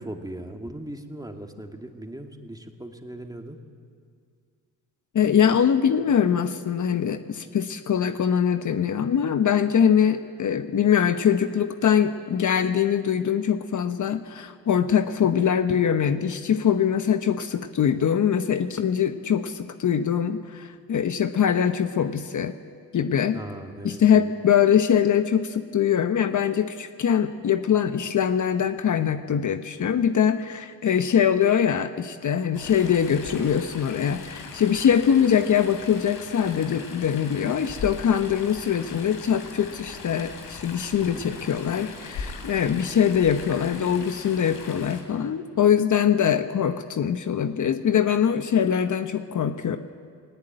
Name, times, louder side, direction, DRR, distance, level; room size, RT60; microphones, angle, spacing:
voice 1, 0.0-3.6 23.3-24.3 40.9-41.2, right 1 dB, 10° right, 3 dB, 2.4 m, -39 dB
voice 2, 5.1-22.5 22.9-23.4 23.8-49.8, left 8 dB, 50° left, 9 dB, 1.0 m, -23 dB
Chatter / Stream, 32.5-45.0, left 4 dB, 75° left, 3.3 m, -40 dB
18.5 x 18.0 x 9.1 m, 2.1 s
supercardioid pair, 60°, 37 cm